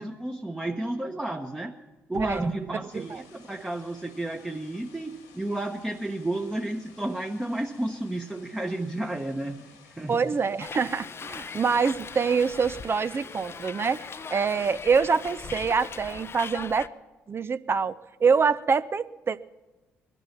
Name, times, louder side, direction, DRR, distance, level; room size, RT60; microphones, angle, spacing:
voice 1, 0.0-1.8 2.1-9.7 10.0-10.2, right 1 dB, 10° right, 2 dB, 1.1 m, -32 dB
voice 2, 2.1-2.5 2.9-3.2 10.1-14.0 14.3-16.9 17.3-19.4, right 5 dB, 40° right, 13 dB, 0.6 m, -25 dB
Knock, 2.1-2.8, right 3 dB, 75° right, 2.0 m, -43 dB
sound 1, 2.9-16.0, left 6 dB, 85° left, 2.0 m, -55 dB
Hiss, 10.6-16.9, left 5 dB, 40° left, 0.6 m, -40 dB
20.5 x 11.0 x 5.9 m, 1.1 s
hypercardioid pair, 50°, 6 cm